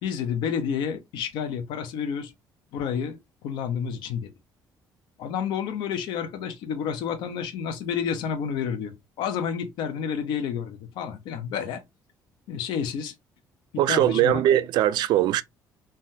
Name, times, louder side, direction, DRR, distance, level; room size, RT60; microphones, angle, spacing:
voice 1, 0.0-2.3 2.7-4.3 5.2-11.8 12.5-13.1 13.9-14.4, left 7 dB, 85° left, 0.8 m, -30 dB
voice 2, 13.8-15.4, right 12 dB, 75° right, 0.3 m, -21 dB
3.4 x 2.2 x 2.7 m
cardioid pair, 130°, 8 cm